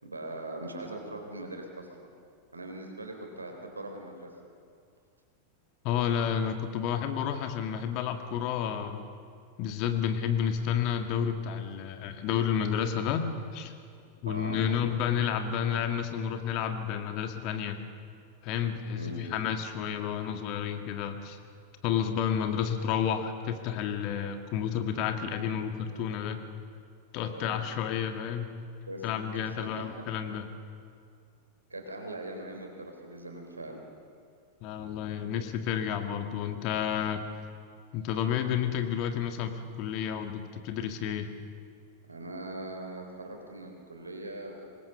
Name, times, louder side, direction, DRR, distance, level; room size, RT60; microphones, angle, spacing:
voice 1, 0.0-1.9 2.5-4.3 14.3-14.6 19.0-19.3 27.2-27.7 28.9-29.9 31.7-33.8 42.1-44.7, right 1 dB, 80° right, 3 dB, 3.6 m, -41 dB
voice 2, 5.8-9.1 9.6-13.7 14.2-17.8 18.4-21.4 21.8-26.4 27.1-28.5 29.0-30.4 34.6-37.2 37.9-41.3, left 8 dB, 40° left, 6 dB, 1.7 m, -31 dB
25.0 x 20.5 x 7.0 m, 2.3 s
figure-of-eight pair, 90°, 0 cm